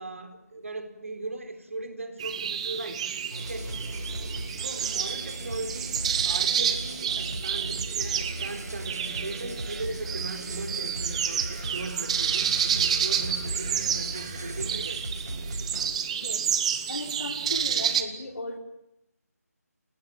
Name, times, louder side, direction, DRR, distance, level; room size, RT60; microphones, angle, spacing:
voice 1, 0.0-3.0 3.4-3.8 4.6-15.0, right 2 dB, 55° right, 8 dB, 3.9 m, -38 dB
sound 1, 2.2-18.0, right 8 dB, 20° right, 1.3 m, -30 dB
sound 2, 3.3-15.9, right 1 dB, 75° right, 6.1 m, -37 dB
voice 2, 16.1-16.5 16.9-18.6, left 2 dB, 60° left, 5 dB, 4.8 m, -36 dB
30.0 x 19.0 x 7.6 m, 0.83 s
figure-of-eight pair, 160°, 9 cm